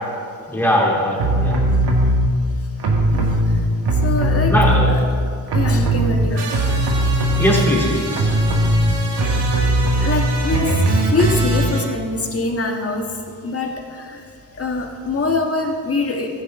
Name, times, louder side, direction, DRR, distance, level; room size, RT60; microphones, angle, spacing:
voice 1, 0.5-1.6 4.5-4.9 7.4-8.3 9.2-9.3, equal, 5° left, -4 dB, 2.9 m, -20 dB
sound 1, 1.2-2.3 2.8-5.2 5.5-11.8, right 1 dB, 80° right, 1.9 m, -18 dB
voice 2, 4.0-5.0 5.5-6.5 7.5-7.6 9.9-10.7 11.1-13.0 13.4-14.2 14.6-16.3, left 3 dB, 35° left, 2 dB, 1.5 m, -24 dB
14.5 x 10.5 x 3.7 m, 2.2 s
cardioid pair, 115°, 40 cm